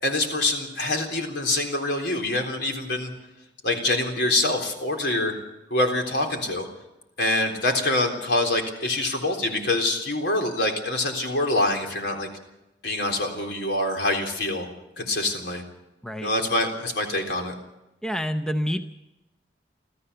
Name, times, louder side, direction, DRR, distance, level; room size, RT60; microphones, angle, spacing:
voice 1, 0.0-3.1 3.6-5.3 5.7-6.7 7.2-12.3 12.8-14.7 15.0-15.6 16.2-17.5, left 2 dB, 70° left, 3 dB, 3.7 m, -25 dB
voice 2, 18.0-18.8, equal, 5° left, 7 dB, 0.7 m, -27 dB
26.5 x 14.5 x 6.9 m, 0.96 s
head